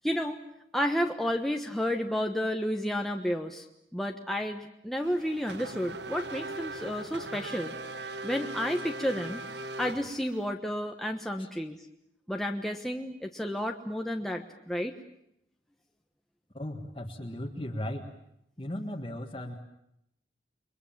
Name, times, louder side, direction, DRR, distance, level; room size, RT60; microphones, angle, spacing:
voice 1, 0.0-0.4 0.7-3.7 3.9-7.7 8.2-9.4 9.8-11.8 12.3-14.9, equal, ahead, 2 dB, 1.2 m, -31 dB
Race car auto racing / Accelerating revving vroom, 5.0-10.5, right 2 dB, 80° right, 1.4 m, -40 dB
voice 2, 16.5-18.1 18.6-19.5, left 1 dB, 30° left, 1 dB, 1.8 m, -36 dB
29.5 x 23.0 x 7.4 m, 0.79 s
head